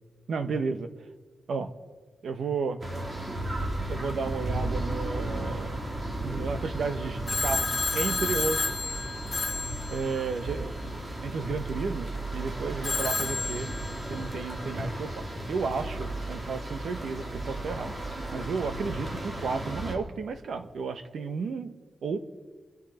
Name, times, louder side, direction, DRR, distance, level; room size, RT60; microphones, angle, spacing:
voice 1, 0.3-0.9 1.5-1.7 2.2-2.8 3.9-5.8 6.2-8.8 9.9-10.7 11.2-13.7 14.1-17.9 18.3-22.2, right 4 dB, 70° right, 9 dB, 1.2 m, -33 dB
sound 1, 2.8-20.0, right 1 dB, 30° right, 2.6 m, -34 dB
Telephone, 7.3-10.6 12.8-14.4, left 3 dB, 25° left, 1.2 m, -31 dB
28.0 x 10.5 x 4.4 m, 1.4 s
wide cardioid pair, 140°, 0 cm